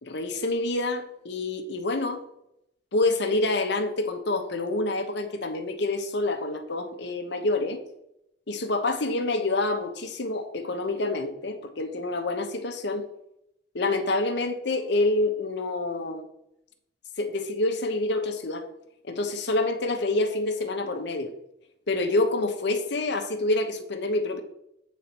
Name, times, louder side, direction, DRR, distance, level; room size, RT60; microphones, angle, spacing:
voice 1, 0.0-2.2 2.9-7.8 8.5-13.1 13.7-16.2 17.2-18.7 19.1-21.3 21.9-24.4, left 2 dB, 65° left, 6 dB, 1.0 m, -27 dB
8.3 x 4.2 x 6.0 m, 0.80 s
head